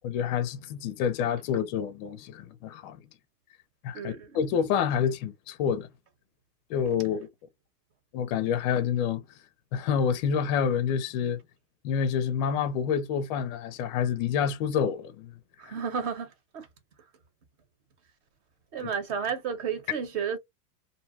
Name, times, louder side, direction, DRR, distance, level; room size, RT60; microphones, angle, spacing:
voice 1, 0.0-3.0 3.8-5.9 6.7-7.3 8.1-9.2 9.7-11.4 11.8-15.3 18.8-18.9, left 7 dB, 30° left, 0.5 m, -28 dB
voice 2, 3.9-4.4 15.6-16.7 18.7-20.4, right 6 dB, 45° right, 1.1 m, -32 dB
2.7 x 2.2 x 2.8 m
supercardioid pair, 140°, 48 cm